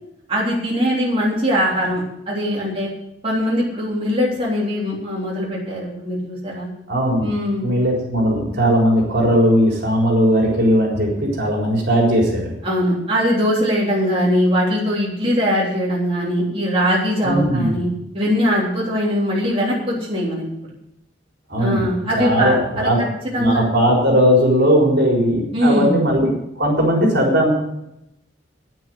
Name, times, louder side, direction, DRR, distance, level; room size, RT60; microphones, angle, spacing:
voice 1, 0.3-2.9 3.2-6.7 7.2-7.7 8.6-8.7 12.6-17.9 18.1-20.4 21.6-22.9 23.3-23.7 25.5-26.0, equal, 30° right, -6 dB, 3.7 m, -21 dB
voice 2, 6.9-7.3 7.6-12.5 17.2-17.8 21.5-21.8 22.1-23.0 23.4-26.3 26.6-27.5, equal, 60° right, -2 dB, 4.2 m, -17 dB
10.5 x 9.4 x 7.8 m, 0.81 s
head